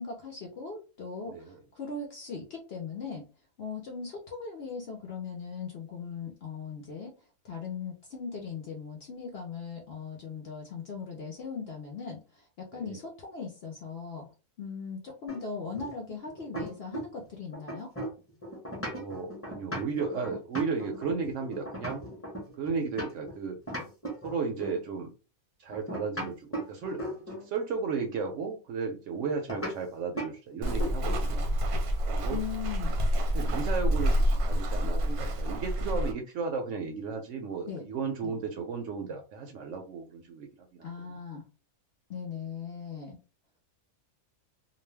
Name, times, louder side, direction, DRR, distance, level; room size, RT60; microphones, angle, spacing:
voice 1, 0.0-3.2 3.6-7.1 7.4-12.4 12.7-14.3 14.6-17.9 32.3-32.9 37.7-37.9 38.2-38.4 40.8-41.4 42.1-43.2, left 5 dB, 60° left, 1 dB, 0.7 m, -39 dB
voice 2, 1.3-1.6 12.7-13.0 18.9-22.0 22.6-23.6 24.2-25.1 25.6-27.0 27.4-31.4 32.1-32.4 33.3-41.2, right 5 dB, 65° right, 4 dB, 0.8 m, -34 dB
sound 1, 15.3-17.2 17.5-23.3 23.7-24.8 25.7-27.5 29.5-29.8 30.2-30.3 30.6-31.3, equal, 10° left, 0.8 m, -37 dB
Walk footsteps, 30.6-36.1, equal, 85° right, 1.1 m, -28 dB
2.4 x 2.1 x 3.3 m, 0.33 s
omnidirectional pair, 1.6 m